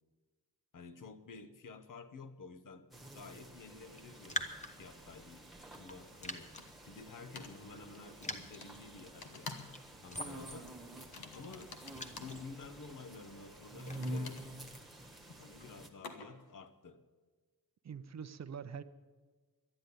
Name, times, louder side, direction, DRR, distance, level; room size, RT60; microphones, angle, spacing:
voice 1, 0.7-2.9 3.1-4.4 4.7-5.5 5.8-6.5 6.8-9.5 10.0-10.7 11.3-11.8 12.2-14.4 15.3-17.0, left 4 dB, 60° left, 10 dB, 1.0 m, -51 dB
sound 1, 2.9-15.9, equal, ahead, 1.4 m, -48 dB
Raindrop, 3.9-14.5, left 2 dB, 20° left, 1.0 m, -48 dB
sound 2, 5.7-5.8 6.6-6.9 7.4-7.6 8.6-8.7 9.2-9.8 10.0-10.3 11.0-12.4 13.8-16.5, left 4 dB, 80° left, 1.5 m, -50 dB
voice 2, 17.8-18.8, right 7 dB, 50° right, 12 dB, 0.6 m, -44 dB
12.0 x 10.5 x 9.7 m, 1.4 s
wide cardioid pair, 155°, 36 cm